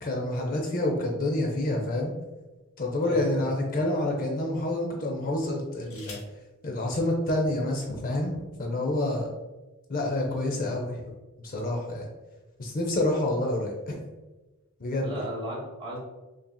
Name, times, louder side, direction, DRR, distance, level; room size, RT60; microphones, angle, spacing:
voice 1, 0.0-2.1 2.8-6.2 6.6-9.3 9.9-11.0 11.4-12.1 12.6-14.0 14.8-15.1, left 1 dB, 40° left, 1 dB, 0.5 m, -28 dB
sound 1, 2.3-2.9 3.6-3.8 5.4-6.4 7.6-7.7 8.0-8.4, left 3 dB, 65° left, 1.0 m, -50 dB
voice 2, 3.0-3.5 10.3-10.6 15.0-16.0, equal, 25° right, -5 dB, 1.2 m, -35 dB
5.5 x 2.7 x 2.2 m, 1.2 s
head